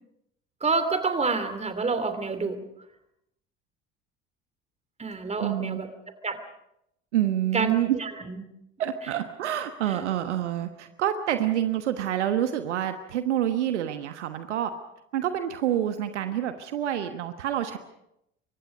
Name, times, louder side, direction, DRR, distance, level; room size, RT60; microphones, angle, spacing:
voice 1, 0.6-2.6 5.0-5.9 6.2-6.4 7.5-8.4 9.9-10.0, right 4 dB, 15° right, 10 dB, 2.9 m, -28 dB
voice 2, 5.4-5.8 7.1-8.0 8.8-14.7 15.1-17.8, right 11 dB, 65° right, 9 dB, 1.4 m, -27 dB
27.5 x 23.5 x 5.2 m, 0.80 s
figure-of-eight pair, 65°, 37 cm